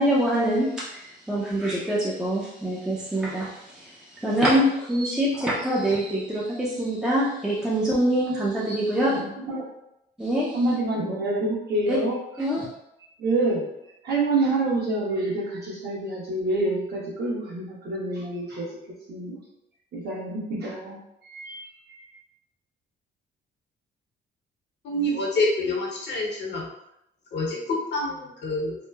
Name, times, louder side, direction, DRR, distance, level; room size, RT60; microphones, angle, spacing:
voice 1, 0.0-9.2 10.2-10.6 11.9-12.0 12.4-12.7, right 1 dB, 5° right, -6 dB, 0.5 m, -25 dB
voice 2, 8.9-9.7 10.5-12.2 13.2-13.6 14.0-18.7 19.1-19.4 19.9-22.2, right 2 dB, 55° right, -5 dB, 1.0 m, -27 dB
voice 3, 24.8-26.6 27.3-28.8, left 1 dB, 60° left, -2 dB, 0.8 m, -27 dB
2.9 x 2.0 x 2.3 m, 0.83 s
cardioid pair, 90°, 20 cm